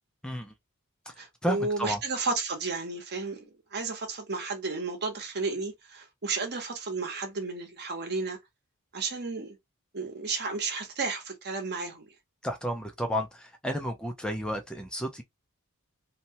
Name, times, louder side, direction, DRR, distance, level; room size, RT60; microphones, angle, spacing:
voice 1, 0.2-0.5 1.1-2.0 12.4-15.2, equal, 5° left, 0.4 m, -32 dB
voice 2, 1.2-3.4 3.7-8.4 8.9-9.6 9.9-12.1, right 4 dB, 50° right, 0.9 m, -32 dB
2.8 x 2.2 x 2.7 m
head